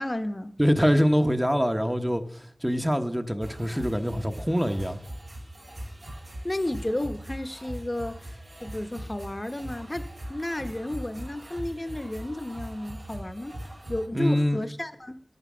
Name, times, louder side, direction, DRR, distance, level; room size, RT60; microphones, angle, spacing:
voice 1, 0.0-0.6 6.4-13.6 13.9-15.2, left 1 dB, 35° left, 1.0 m, -32 dB
voice 2, 0.6-5.0 14.1-14.6, equal, 10° right, 1.1 m, -24 dB
sound 1, 3.4-14.1, right 1 dB, 70° right, 2.6 m, -41 dB
10.5 x 9.2 x 6.3 m
wide cardioid pair, 40°, 0 cm